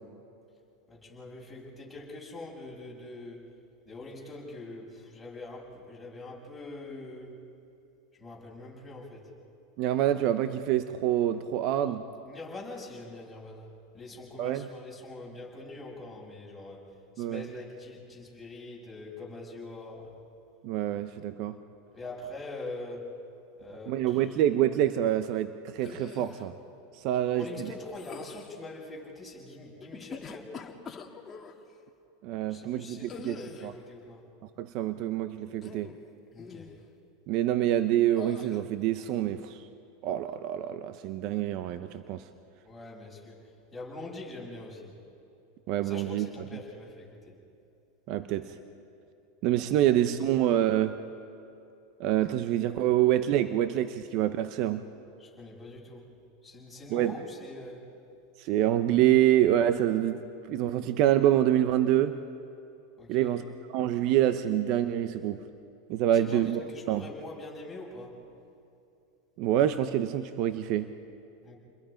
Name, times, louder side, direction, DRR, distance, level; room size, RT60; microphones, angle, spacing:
voice 1, 0.9-3.4 3.9-7.4 8.2-9.3 12.3-16.8 17.2-20.1 21.9-23.1 23.6-24.2 27.2-30.5 32.5-34.2 36.3-36.7 42.6-43.4 43.7-44.9 45.8-47.3 55.2-56.1 56.4-57.8 63.0-63.3 66.1-68.2 71.4-71.6, left 2 dB, 5° left, -5 dB, 7.4 m, -43 dB
voice 2, 9.8-12.0 14.4-14.7 17.2-17.5 20.6-21.6 23.9-26.5 26.9-27.7 32.2-33.4 33.6-33.7 34.6-35.9 37.3-39.6 40.0-42.2 45.7-46.3 48.1-48.5 49.4-51.0 52.0-54.8 56.9-57.2 58.4-60.2 60.5-62.2 63.1-63.4 63.7-65.4 65.9-66.6 66.9-67.0 69.4-70.9, right 12 dB, 55° right, 10 dB, 0.8 m, -26 dB
sound 1, 25.8-26.5 27.9-28.6 29.8-31.6 33.1-33.8 35.5-36.1 36.4-36.8 38.2-38.6, left 6 dB, 25° left, 1.9 m, -44 dB
29.5 x 21.5 x 5.2 m, 2.6 s
supercardioid pair, 120°, 0 cm